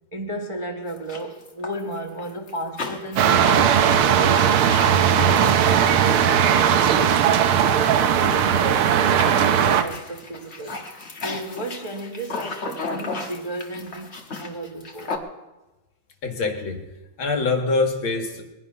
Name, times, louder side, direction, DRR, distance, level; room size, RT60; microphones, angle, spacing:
voice 1, 0.1-4.8 5.1-8.9 9.3-10.8 11.2-15.1, right 1 dB, 20° right, 0.9 m, -33 dB
sound 1, 0.9-8.5 8.7-15.2, left 3 dB, 35° left, 1.5 m, -36 dB
sound 2, 3.2-9.8, right 8 dB, 80° right, 1.7 m, -18 dB
voice 2, 16.2-16.8 17.2-18.4, left 3 dB, 70° left, 2.7 m, -24 dB
21.0 x 11.0 x 5.6 m
omnidirectional pair, 2.4 m